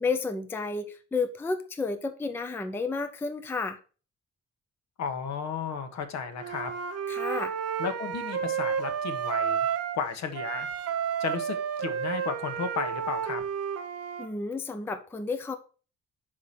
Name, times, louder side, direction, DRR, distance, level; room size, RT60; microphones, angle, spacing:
voice 1, 0.0-3.8 7.1-7.5 14.2-15.5, left 4 dB, 10° left, 8 dB, 0.4 m, -31 dB
voice 2, 5.0-6.7 7.8-9.7 9.9-10.7 11.2-13.4, left 6 dB, 65° left, 8 dB, 1.2 m, -33 dB
Wind instrument woodwind instrument, 6.4-10.0 10.3-14.3, right 7 dB, 55° right, 0.7 m, -31 dB
5.6 x 4.9 x 5.6 m, 0.38 s
wide cardioid pair, 170°, 30 cm